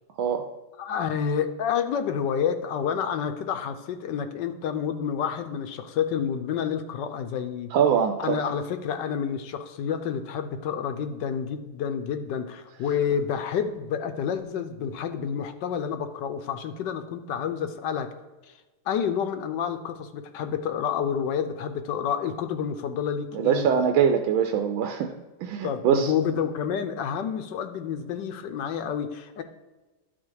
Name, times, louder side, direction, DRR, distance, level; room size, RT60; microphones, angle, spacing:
voice 1, 0.8-7.7 8.2-18.1 18.9-23.7 25.6-29.4, left 7 dB, 70° left, 8 dB, 1.2 m, -29 dB
voice 2, 7.7-8.4 23.3-25.1 25.4-26.1, right 7 dB, 90° right, 6 dB, 1.4 m, -23 dB
11.0 x 4.1 x 4.7 m, 1.2 s
omnidirectional pair, 2.1 m